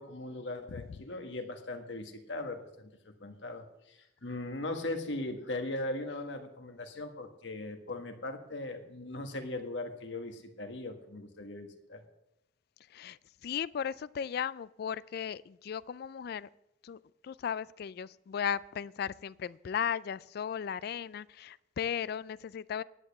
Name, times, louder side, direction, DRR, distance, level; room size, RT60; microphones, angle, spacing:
voice 1, 0.0-12.0, left 2 dB, 80° left, 5 dB, 1.6 m, -39 dB
voice 2, 12.9-16.5 16.8-22.8, left 8 dB, 60° left, 19 dB, 0.3 m, -36 dB
11.0 x 8.7 x 7.0 m, 0.84 s
head